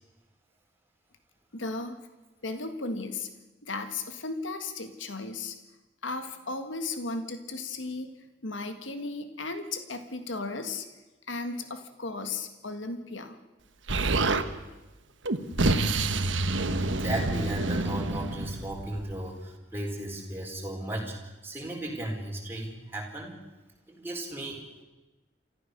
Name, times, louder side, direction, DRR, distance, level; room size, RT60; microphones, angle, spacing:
voice 1, 1.5-2.0 2.4-3.3 3.6-5.5 6.0-8.1 8.4-10.9 11.3-13.4, left 3 dB, 85° left, 8 dB, 1.8 m, -35 dB
Explosion, 13.9-14.5 15.2-19.1, right 2 dB, 80° right, 1.3 m, -27 dB
voice 2, 16.7-23.3 23.9-24.6, right 1 dB, 10° right, -1 dB, 4.8 m, -35 dB
28.5 x 14.0 x 6.9 m, 1.1 s
head